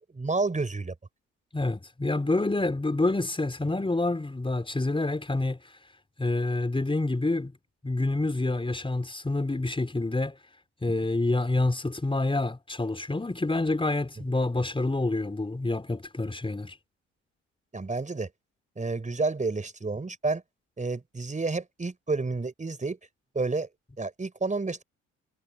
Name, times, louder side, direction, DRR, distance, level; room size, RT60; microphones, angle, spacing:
voice 1, 0.1-0.9 17.7-18.3 18.8-20.4 20.8-23.0 23.4-23.7 24.0-24.8, right 3 dB, 20° right, 5.1 m, -30 dB
voice 2, 1.5-5.6 6.2-7.5 7.8-10.4 10.8-16.8, left 2 dB, 15° left, 5.0 m, -27 dB
hypercardioid pair, 60°, 35 cm